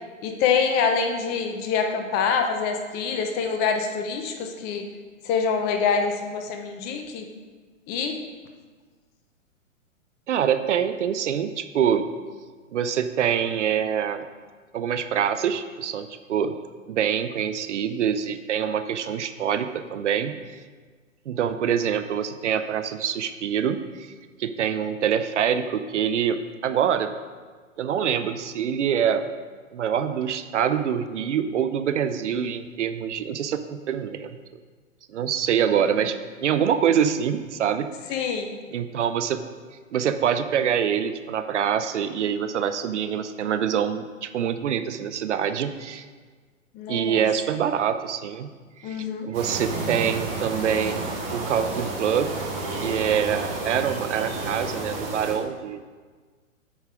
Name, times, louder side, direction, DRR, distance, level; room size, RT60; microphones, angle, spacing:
voice 1, 0.2-4.9 5.2-7.3 7.9-8.2 38.1-38.5 46.7-47.2 48.8-49.3, left 6 dB, 25° left, 5 dB, 0.8 m, -25 dB
voice 2, 10.3-12.1 12.7-14.3 14.7-16.5 16.9-20.4 21.3-24.1 24.4-27.1 27.8-29.3 29.7-34.4 35.1-37.9 38.7-39.4 39.9-46.0 46.9-48.5 48.8-52.3 52.7-55.9, right 8 dB, 60° right, 10 dB, 0.6 m, -25 dB
sound 1, 49.3-55.3, right 2 dB, 30° right, 1.8 m, -31 dB
8.4 x 5.4 x 5.0 m, 1.5 s
figure-of-eight pair, 120°, 40 cm